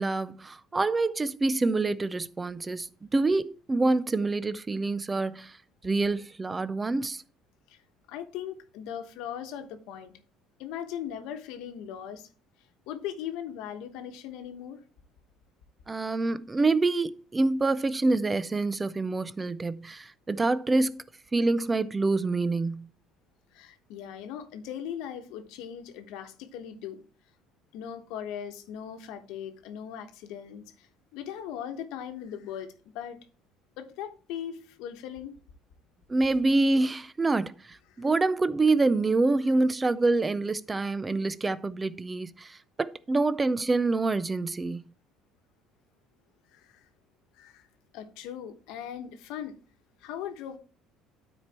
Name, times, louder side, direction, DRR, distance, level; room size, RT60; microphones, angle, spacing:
voice 1, 0.0-5.6 5.8-7.2 15.9-21.0 21.3-22.9 36.1-44.8, right 3 dB, 15° right, 0.4 m, -26 dB
voice 2, 8.1-10.1 10.6-12.3 12.9-14.8 23.5-27.0 27.7-33.2 33.8-35.3 38.0-38.1 46.5-46.8 47.3-47.7 47.9-49.6 50.0-50.6, left 9 dB, 75° left, 1.1 m, -39 dB
13.0 x 4.5 x 2.9 m
cardioid pair, 150°, 0 cm